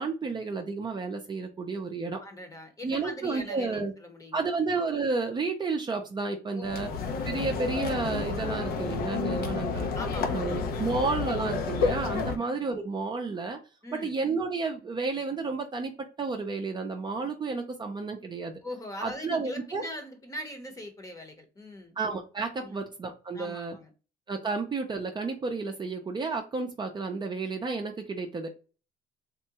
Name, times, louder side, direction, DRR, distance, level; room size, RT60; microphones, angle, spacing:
voice 1, 0.0-2.2 2.8-3.9 4.3-6.9 7.3-9.9 10.3-13.6 14.0-15.9 16.2-18.6 19.0-19.8 22.0-23.8 24.3-28.5, right 4 dB, 25° right, 0.5 m, -31 dB
voice 2, 2.2-4.6 6.5-6.9 9.9-11.0 12.2-12.5 13.8-14.1 18.6-22.0 22.6-22.8 23.3-23.9, left 1 dB, 20° left, 0.8 m, -41 dB
sound 1, 6.6-12.4, left 5 dB, 65° left, 0.6 m, -30 dB
3.6 x 2.2 x 2.8 m
cardioid pair, 110°, 17 cm